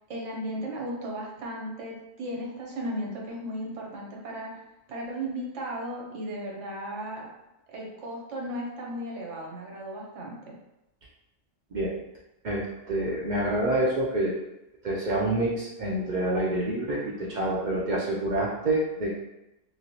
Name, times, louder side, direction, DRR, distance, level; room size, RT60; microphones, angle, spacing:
voice 1, 0.1-4.5 4.9-7.3 7.7-10.6, right 1 dB, 75° right, -2 dB, 1.1 m, -35 dB
voice 2, 12.4-14.3 14.8-19.1, right 1 dB, 55° right, -4 dB, 0.5 m, -27 dB
3.1 x 2.7 x 2.9 m, 0.93 s
omnidirectional pair, 1.3 m